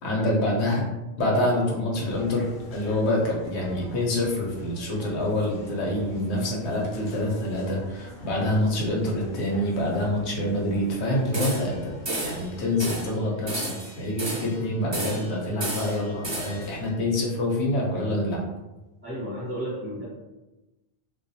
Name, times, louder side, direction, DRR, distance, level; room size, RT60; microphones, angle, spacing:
voice 1, 0.0-0.8 1.2-11.9 12.2-13.7 14.0-18.4, left 1 dB, 85° left, -2 dB, 1.0 m, -26 dB
sound 1, 1.9-13.1, left 2 dB, 60° left, 0.6 m, -45 dB
sound 2, 11.3-11.8 12.0-12.4 12.8-13.1 13.5-14.6 14.9-15.3 15.6-16.7, right 2 dB, 35° right, 0.5 m, -32 dB
voice 2, 19.0-20.0, equal, 15° right, -10 dB, 0.9 m, -33 dB
2.3 x 2.2 x 2.6 m, 1.1 s
omnidirectional pair, 1.1 m